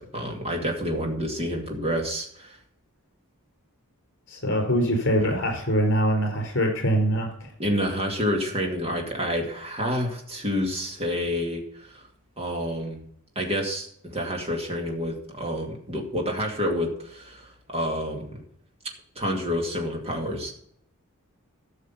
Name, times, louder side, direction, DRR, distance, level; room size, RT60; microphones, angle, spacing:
voice 1, 0.0-2.6 7.6-12.0 12.4-13.1 13.4-18.4 19.2-20.5, equal, 25° right, 1 dB, 2.3 m, -28 dB
voice 2, 4.3-7.5, equal, 55° left, 2 dB, 4.5 m, -23 dB
13.0 x 6.5 x 5.7 m, 0.66 s
head